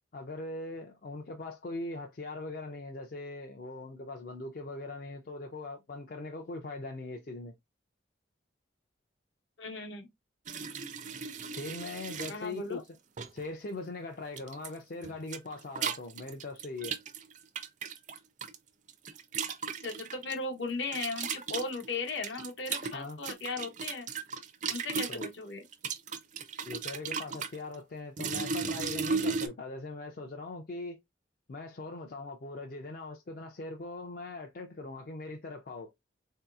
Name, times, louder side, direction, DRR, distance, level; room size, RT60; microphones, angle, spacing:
voice 1, 0.1-7.5 11.5-13.0 13.3-17.0 22.9-23.2 25.1-25.3 26.6-31.0 31.5-35.9, left 2 dB, 50° left, 0.4 m, -41 dB
voice 2, 9.6-10.1 12.3-12.8 19.8-24.1 24.7-25.6, left 3 dB, 75° left, 0.9 m, -37 dB
sound 1, 10.5-12.4 13.2-13.5 14.4-14.7 15.0-18.6 18.9-20.3 20.9-25.3 25.7-27.6 28.2-29.5, right 5 dB, 40° right, 0.4 m, -36 dB
3.9 x 2.7 x 2.3 m
head